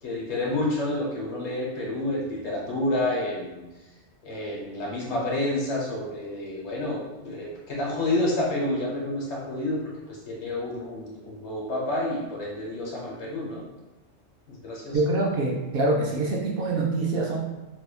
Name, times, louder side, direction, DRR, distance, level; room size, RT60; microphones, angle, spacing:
voice 1, 0.0-3.6 4.2-13.6 14.5-15.0, left 1 dB, 70° left, -4 dB, 1.3 m, -29 dB
voice 2, 14.9-17.4, right 2 dB, 60° right, -2 dB, 0.7 m, -25 dB
4.1 x 2.7 x 2.3 m, 1.1 s
omnidirectional pair, 1.2 m